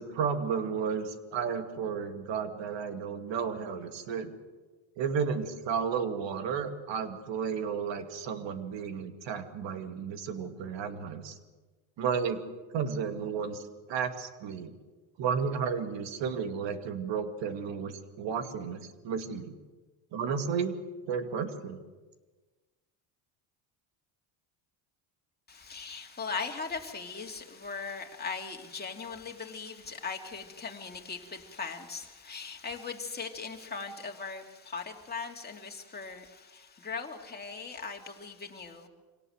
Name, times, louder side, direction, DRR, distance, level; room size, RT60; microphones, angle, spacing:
voice 1, 0.0-4.3 5.0-11.3 12.0-12.4 12.7-13.6 13.9-14.7 15.2-19.6 20.1-20.7 21.1-21.8, right 6 dB, 65° right, 7 dB, 2.5 m, -33 dB
voice 2, 25.5-38.9, left 5 dB, 20° left, 2 dB, 2.8 m, -39 dB
26.0 x 18.0 x 8.0 m, 1.3 s
cardioid pair, 125°, 47 cm